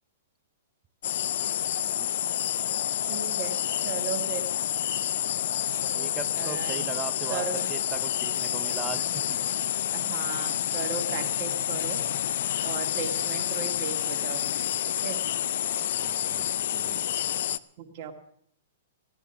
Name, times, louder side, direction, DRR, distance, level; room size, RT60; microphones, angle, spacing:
sound 1, 1.0-17.6, left 11 dB, 65° left, 0.5 m, -29 dB
voice 1, 1.3-1.7 1.9-2.1 5.9-9.4 15.9-17.2, right 8 dB, 20° right, 12 dB, 0.7 m, -39 dB
voice 2, 3.0-4.5 6.4-6.8 7.3-7.7 9.9-12.0 12.6-14.5 15.0-15.2 17.8-18.1, right 7 dB, 50° right, 4 dB, 2.0 m, -36 dB
16.5 x 10.0 x 7.1 m, 0.70 s
hypercardioid pair, 130°, 0 cm